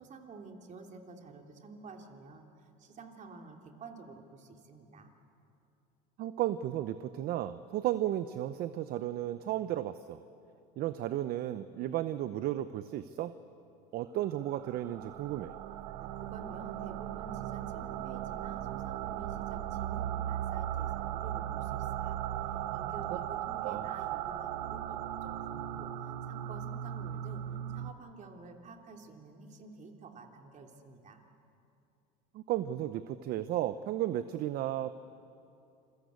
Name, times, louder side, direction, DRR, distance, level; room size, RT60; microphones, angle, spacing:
voice 1, 0.0-5.1 16.0-27.4 27.7-31.2, right 4 dB, 40° right, 3 dB, 3.1 m, -50 dB
voice 2, 6.2-10.2 10.8-13.3 13.9-15.6 23.6-23.9 32.3-34.9, right 13 dB, 55° right, 13 dB, 0.8 m, -34 dB
sound 1, 14.3-27.9, right 11 dB, 85° right, 1.0 m, -37 dB
28.0 x 22.0 x 8.2 m, 2.6 s
supercardioid pair, 100°, 19 cm